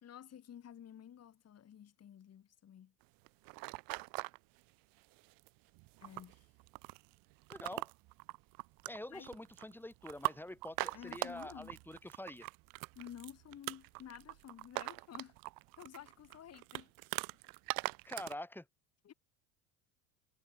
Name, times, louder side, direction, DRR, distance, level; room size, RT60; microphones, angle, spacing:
voice 1, 0.0-2.9 6.0-6.5 9.1-9.3 10.9-11.7 12.9-15.4 15.8-16.9 19.0-19.1, left 9 dB, 30° left, 2.6 m, -52 dB
sound 1, 3.0-4.4 5.0-5.5 5.7-18.3, right 27 dB, 45° right, 0.8 m, -42 dB
voice 2, 7.5-7.9 8.9-12.5 18.1-18.7, left 1 dB, 5° left, 3.5 m, -46 dB
hypercardioid pair, 75°, 46 cm